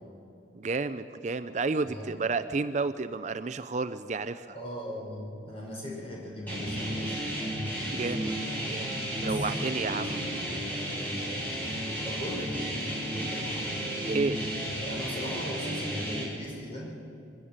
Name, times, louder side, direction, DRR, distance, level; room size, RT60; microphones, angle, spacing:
voice 1, 0.5-4.5 7.9-8.3 8.7-10.2 14.0-14.4, right 4 dB, 40° right, 11 dB, 0.4 m, -31 dB
voice 2, 1.8-2.2 4.5-7.3 9.2-10.6 12.0-12.8 13.1-13.7 14.7-16.9, equal, 30° left, -2 dB, 5.1 m, -39 dB
sound 1, 6.5-16.2, equal, 10° left, 5.3 m, -33 dB
23.5 x 13.5 x 8.6 m, 2.7 s
head